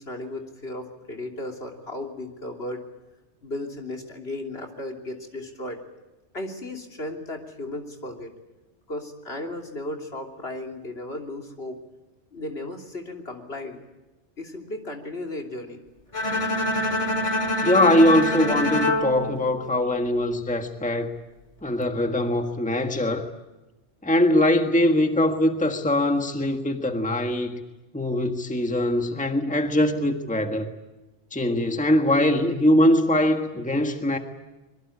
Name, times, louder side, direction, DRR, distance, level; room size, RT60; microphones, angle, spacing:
voice 1, 0.0-2.8 3.4-5.8 6.3-8.3 8.9-11.8 12.3-13.8 14.4-15.8, left 1 dB, 60° left, 3.3 m, -35 dB
Bowed string instrument, 16.1-20.3, left 1 dB, 30° left, 2.0 m, -26 dB
voice 2, 17.6-21.1 21.6-23.3 24.0-27.6 27.9-30.7 31.3-34.2, left 1 dB, 5° left, 1.6 m, -22 dB
24.5 x 22.5 x 8.5 m
omnidirectional pair, 1.2 m